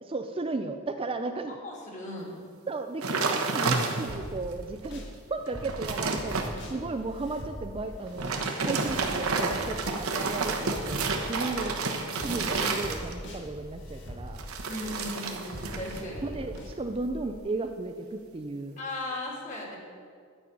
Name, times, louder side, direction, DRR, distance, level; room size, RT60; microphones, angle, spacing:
voice 1, 0.0-1.6 2.7-5.0 5.3-6.4 6.6-11.8 12.1-14.4 16.2-18.8, right 3 dB, 25° right, 6 dB, 0.4 m, -35 dB
voice 2, 1.6-2.4 14.7-16.4 18.8-19.8, left 1 dB, 35° left, -2 dB, 2.5 m, -37 dB
sound 1, 3.0-4.3 4.8-4.9 5.4-6.5 8.1-13.3 14.4-16.1 16.3-16.7, right 4 dB, 90° right, 1.1 m, -30 dB
sound 2, 4.1-5.1 5.5-11.8 12.2-17.4, equal, 55° left, 1.9 m, -42 dB
11.5 x 5.5 x 8.2 m, 2.1 s
head